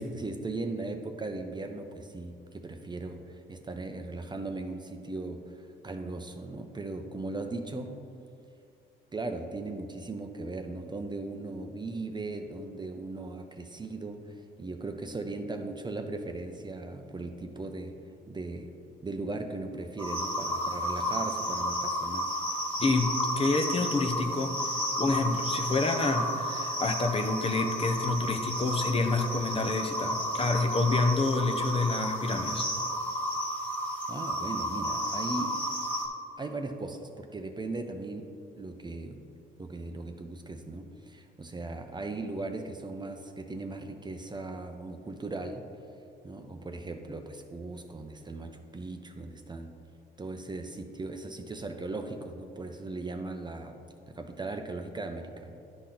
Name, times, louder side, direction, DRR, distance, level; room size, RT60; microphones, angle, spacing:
voice 1, 0.0-8.0 9.1-17.9 18.3-18.7 19.0-22.3 34.1-35.6 36.4-38.3 38.6-39.2 39.6-45.6 46.2-49.8 50.2-53.7 54.1-55.6, right 2 dB, 20° right, 5 dB, 0.6 m, -38 dB
sound 1, 20.0-36.1, equal, 10° left, 1.3 m, -32 dB
voice 2, 22.8-23.1 23.3-32.6, left 3 dB, 30° left, 5 dB, 0.7 m, -28 dB
11.5 x 4.2 x 3.8 m, 2.5 s
cardioid pair, 90°, 20 cm